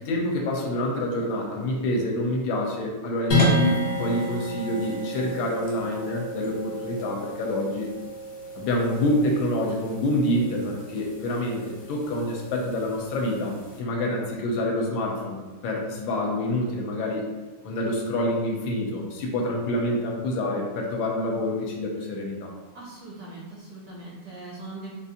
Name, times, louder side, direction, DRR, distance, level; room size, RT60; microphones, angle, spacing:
voice 1, 0.0-7.9 8.6-17.2 17.6-22.5, left 1 dB, 75° left, 0 dB, 1.3 m, -27 dB
sound 1, 3.3-13.8, equal, 60° left, 1.4 m, -31 dB
voice 2, 22.7-24.9, right 2 dB, 70° right, -5 dB, 0.9 m, -40 dB
3.9 x 2.4 x 2.7 m, 1.3 s
omnidirectional pair, 2.2 m